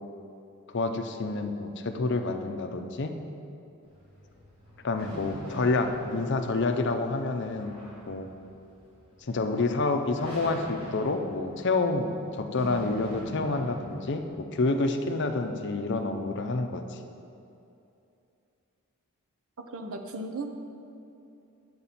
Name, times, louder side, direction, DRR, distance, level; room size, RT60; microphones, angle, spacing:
voice 1, 0.7-3.2 4.8-7.7 8.1-8.3 9.3-17.0, left 3 dB, 50° left, 6 dB, 0.6 m, -28 dB
sound 1, 3.8-14.3, equal, 25° right, 2.0 m, -43 dB
voice 2, 19.7-20.5, right 2 dB, 65° right, 5 dB, 0.7 m, -35 dB
8.5 x 6.7 x 4.2 m, 2.7 s
head